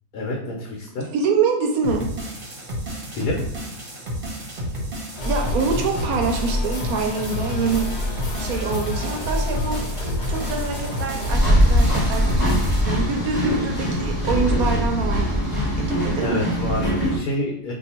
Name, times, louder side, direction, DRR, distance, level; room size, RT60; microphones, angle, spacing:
voice 1, 0.1-1.1 3.1-3.4 16.2-17.7, left 1 dB, 70° left, -3 dB, 1.2 m, -28 dB
voice 2, 1.1-2.1 5.2-7.9 8.4-12.3 12.8-15.4 15.7-16.5, right 4 dB, 70° right, 2 dB, 1.0 m, -25 dB
sound 1, 1.8-12.8, equal, 40° right, 0.9 m, -31 dB
sound 2, 5.2-11.4, left 1 dB, 40° left, 0.7 m, -28 dB
sound 3, 11.3-17.2, equal, 5° right, 1.2 m, -21 dB
2.7 x 2.5 x 4.2 m, 0.79 s
omnidirectional pair, 1.7 m